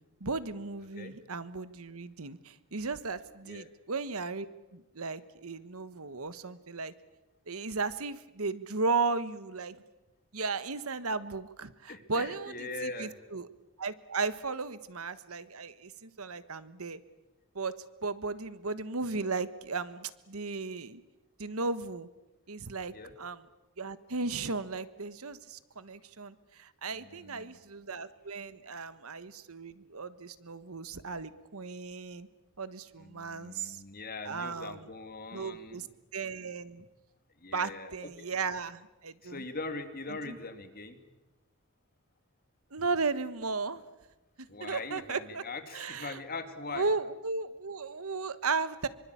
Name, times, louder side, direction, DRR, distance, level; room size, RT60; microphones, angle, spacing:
voice 1, 0.2-4.5 4.7-6.9 7.5-9.8 10.3-13.5 13.8-17.0 17.5-21.0 21.4-22.1 22.5-23.4 23.8-32.3 32.6-33.8 34.2-34.9 35.3-35.9 36.1-36.8 37.5-39.4 40.3-40.4 42.7-43.8 44.6-45.4 45.7-46.2 46.7-48.9, right 4 dB, 85° right, 14 dB, 1.4 m, -35 dB
voice 2, 11.9-13.1 22.9-23.1 26.9-27.6 33.0-35.9 37.4-38.3 39.2-41.0 44.5-46.9, left 3 dB, 45° left, 7 dB, 2.9 m, -41 dB
25.0 x 24.5 x 8.6 m, 1.0 s
head